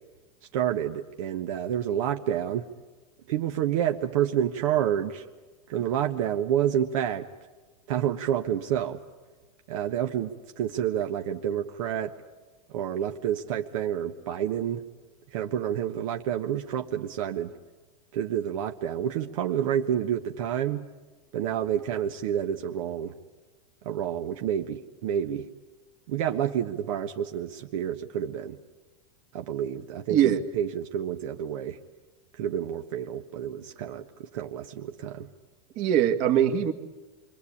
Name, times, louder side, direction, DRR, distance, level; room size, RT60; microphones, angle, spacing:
voice 1, 0.5-2.7 3.3-5.2 5.7-7.3 7.9-9.0 9.7-12.1 12.7-14.8 15.3-17.5 18.1-20.8 21.3-23.1 23.8-25.5 26.1-28.6 29.3-31.8 32.4-35.3, right 10 dB, 65° right, 4 dB, 1.3 m, -29 dB
voice 2, 30.1-30.4 35.8-36.7, right 10 dB, 45° right, 8 dB, 1.9 m, -22 dB
28.5 x 23.5 x 8.6 m, 1.3 s
supercardioid pair, 155°, 18 cm